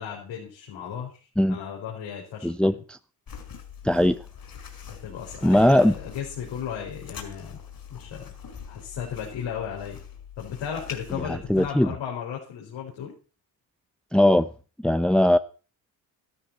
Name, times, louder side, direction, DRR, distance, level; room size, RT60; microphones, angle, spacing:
voice 1, 0.0-1.2 1.5-2.7 4.9-7.6 7.9-8.3 8.7-10.0 10.4-13.1, left 8 dB, 70° left, 5.1 m, -35 dB
voice 2, 2.4-3.0 3.8-4.2 5.4-5.9 11.3-11.9 14.1-14.5 14.8-15.4, left 1 dB, ahead, 0.9 m, -19 dB
sound 1, 3.3-11.7, left 7 dB, 50° left, 5.3 m, -43 dB
13.5 x 13.5 x 4.3 m
hypercardioid pair, 55°, 46 cm